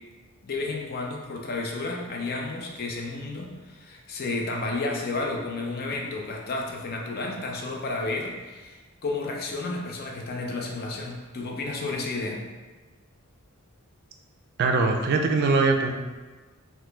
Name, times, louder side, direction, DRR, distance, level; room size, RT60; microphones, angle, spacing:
voice 1, 0.4-12.4, left 3 dB, 45° left, 0 dB, 0.4 m, -32 dB
voice 2, 14.6-15.9, right 3 dB, 50° right, 4 dB, 0.3 m, -22 dB
2.9 x 2.2 x 3.2 m, 1.3 s
head